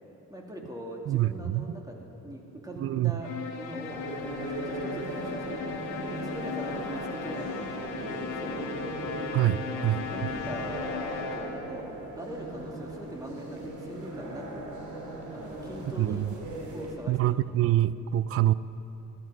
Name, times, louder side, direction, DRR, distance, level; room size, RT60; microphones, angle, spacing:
voice 1, 0.3-4.0 4.4-5.8 6.2-8.7 9.7-11.9 12.2-14.7 15.3-16.3 16.7-17.4, equal, 10° right, 0 dB, 2.2 m, -41 dB
voice 2, 1.1-1.7 2.8-3.1 9.3-10.0 16.0-16.3 17.1-18.5, right 14 dB, 50° right, 17 dB, 0.4 m, -25 dB
sound 1, 3.2-11.8, left 6 dB, 90° left, 1.4 m, -37 dB
sound 2, 3.8-16.9, right 2 dB, 75° right, 2.5 m, -38 dB
14.5 x 13.0 x 4.8 m, 2.9 s
cardioid pair, 90°, 30 cm